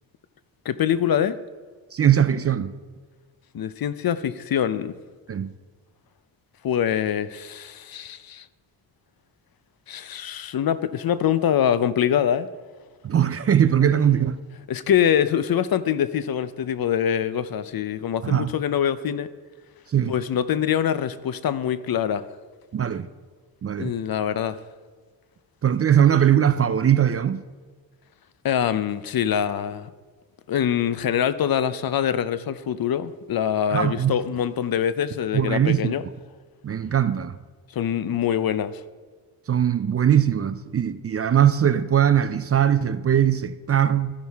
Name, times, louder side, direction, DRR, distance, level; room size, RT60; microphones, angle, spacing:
voice 1, 0.7-1.4 3.5-4.9 6.6-8.4 9.9-12.5 14.7-19.3 20.1-22.2 23.8-24.6 28.4-29.9 30.5-36.0 37.7-38.8, left 9 dB, 50° left, 0.6 m, -24 dB
voice 2, 1.9-2.7 5.3-5.5 13.0-14.4 18.2-18.5 19.9-20.2 22.7-23.1 23.6-23.9 25.6-27.4 33.7-34.2 35.3-35.9 36.6-37.4 39.5-44.1, right 9 dB, 35° right, 0.4 m, -20 dB
14.0 x 6.3 x 3.4 m
cardioid pair, 65°, 45 cm